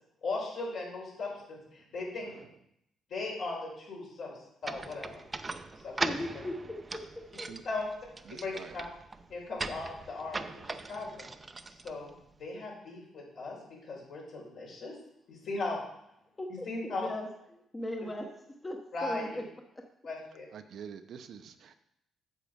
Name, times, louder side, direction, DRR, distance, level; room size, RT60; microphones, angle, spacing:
voice 1, 0.2-2.3 3.1-4.3 4.6-5.2 5.8-6.1 7.6-7.9 8.3-8.8 9.3-11.3 11.7-12.1 12.4-13.6 13.8-14.9 15.3-15.8 16.6-17.1 18.9-19.4 20.0-20.5, left 3 dB, 70° left, -3 dB, 4.3 m, -38 dB
sound 1, 4.6-12.5, right 3 dB, 25° right, 0.6 m, -40 dB
voice 2, 6.0-7.0 7.4-7.5 16.4-17.3 17.7-18.3 18.6-19.4, left 1 dB, 20° left, 2 dB, 1.0 m, -37 dB
voice 3, 8.3-8.7 20.5-21.7, right 7 dB, 65° right, 8 dB, 0.7 m, -46 dB
8.1 x 6.7 x 5.1 m, 0.76 s
cardioid pair, 90°, 0 cm